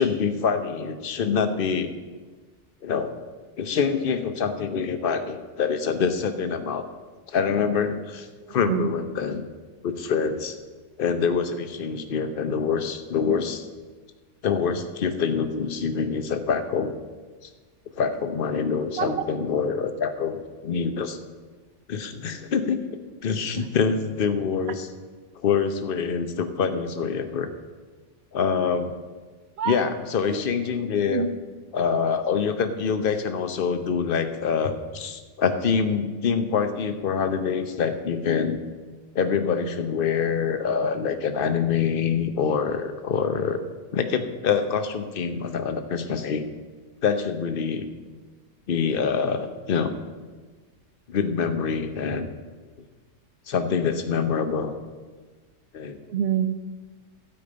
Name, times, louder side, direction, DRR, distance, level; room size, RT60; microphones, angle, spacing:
voice 1, 0.0-1.9 2.8-3.1 3.6-6.8 7.3-9.4 9.8-10.6 11.0-13.7 14.4-16.9 17.9-21.2 21.9-22.8 23.2-24.9 25.4-27.5 28.3-28.9 29.7-31.3 31.7-38.6 39.1-43.6 43.9-46.5 47.0-47.9 48.7-50.0 51.1-52.3 53.5-54.8 55.7-56.0, left 6 dB, 50° left, 9 dB, 0.9 m, -25 dB
voice 2, 8.5-8.9 19.0-19.2 23.6-23.7 29.6-29.8 30.3-30.4 31.1-31.3 56.1-56.6, right 8 dB, 65° right, 10 dB, 0.9 m, -26 dB
12.0 x 5.2 x 8.7 m, 1.4 s
omnidirectional pair, 1.3 m